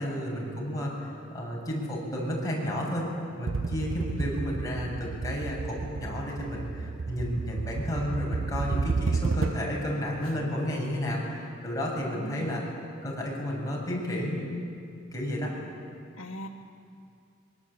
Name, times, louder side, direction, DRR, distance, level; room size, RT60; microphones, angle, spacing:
voice 1, 0.0-3.1 3.4-12.6 13.0-14.5 15.1-15.5, equal, 20° left, -4 dB, 7.9 m, -32 dB
sound 1, 3.5-9.8, right 4 dB, 75° right, 0.6 m, -32 dB
voice 2, 12.1-12.8 16.2-16.5, left 1 dB, 80° left, -4 dB, 1.9 m, -40 dB
26.5 x 25.0 x 8.9 m, 2.3 s
head